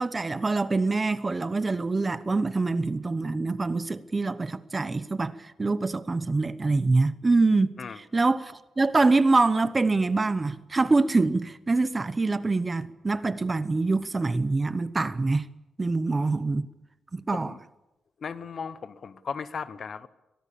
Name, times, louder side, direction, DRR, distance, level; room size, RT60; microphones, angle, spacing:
voice 1, 0.0-7.7 8.0-15.5 15.8-16.7 17.1-17.5, right 3 dB, 20° right, 0.8 m, -25 dB
voice 2, 18.2-20.1, left 6 dB, 40° left, 0.9 m, -36 dB
23.5 x 18.0 x 8.6 m
wide cardioid pair, 160°, 0 cm